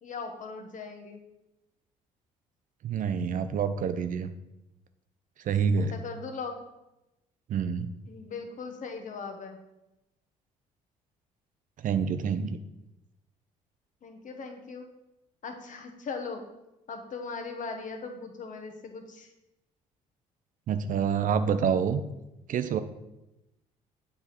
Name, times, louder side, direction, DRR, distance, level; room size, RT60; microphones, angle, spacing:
voice 1, 0.0-1.2 5.9-6.5 8.1-9.6 14.0-14.9 15.4-16.4 16.9-19.3, left 4 dB, 45° left, 5 dB, 1.0 m, -39 dB
voice 2, 2.8-4.3 5.4-5.9 7.5-7.9 11.8-12.6 20.7-22.0 22.5-22.8, right 6 dB, 50° right, 10 dB, 0.5 m, -27 dB
7.7 x 3.3 x 4.1 m, 0.94 s
hypercardioid pair, 55°, 18 cm